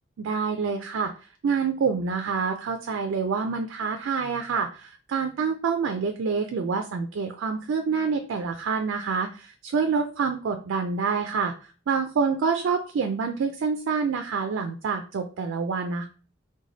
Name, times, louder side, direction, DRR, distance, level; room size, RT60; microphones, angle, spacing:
voice 1, 0.2-1.1 1.4-11.5 11.9-16.1, right 5 dB, 60° right, 6 dB, 0.3 m, -27 dB
3.2 x 2.2 x 3.8 m, 0.38 s
head